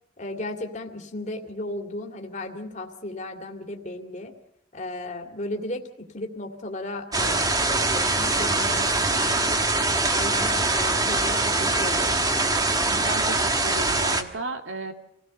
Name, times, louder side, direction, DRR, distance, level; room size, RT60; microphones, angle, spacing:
voice 1, 0.2-4.3 4.7-5.8 6.1-9.6 10.1-12.2, left 1 dB, 35° left, 3 dB, 2.4 m, -35 dB
sound 1, 7.1-14.2, right 2 dB, 20° right, 1.3 m, -23 dB
voice 2, 12.8-14.9, right 2 dB, 75° right, 6 dB, 2.4 m, -34 dB
27.0 x 17.0 x 6.8 m, 0.76 s
head